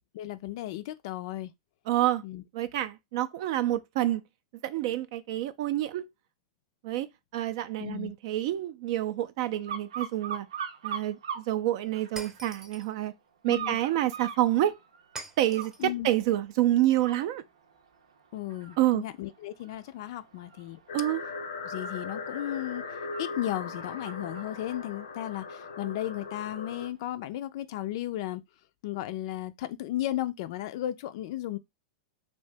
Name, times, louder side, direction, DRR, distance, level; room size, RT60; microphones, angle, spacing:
voice 1, 0.1-1.5 2.2-2.4 7.8-8.1 13.5-13.8 15.8-16.1 18.3-20.8 21.6-28.4 28.8-31.6, left 13 dB, 60° left, 0.3 m, -35 dB
voice 2, 1.9-2.2 2.5-4.2 4.6-6.0 6.8-7.1 7.3-10.5 10.8-13.1 13.4-14.7 15.4-17.4 18.8-19.0 20.9-21.2, right 14 dB, 60° right, 0.3 m, -28 dB
sound 1, 9.7-11.5 11.9-12.6 13.5-15.8 16.3-16.5 16.9-26.2 26.6-26.7, right 8 dB, 90° right, 0.7 m, -42 dB
Shatter, 12.2-12.9 15.2-15.9, right 3 dB, 20° right, 0.7 m, -44 dB
sound 2, 20.9-26.9, left 4 dB, 90° left, 0.6 m, -39 dB
2.8 x 2.6 x 3.3 m
hypercardioid pair, 130°, 3 cm